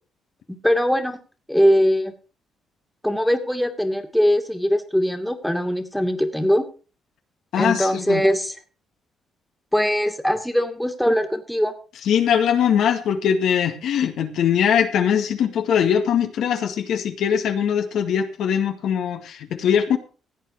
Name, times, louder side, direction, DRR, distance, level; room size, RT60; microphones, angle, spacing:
voice 1, 0.5-1.2 1.5-2.1 3.0-6.7 7.6-8.5 9.7-11.7, equal, ahead, 5 dB, 2.3 m, -21 dB
voice 2, 7.5-8.2 12.0-20.0, left 8 dB, 75° left, 5 dB, 2.0 m, -21 dB
16.0 x 8.6 x 4.8 m, 0.36 s
cardioid pair, 90°, 0 cm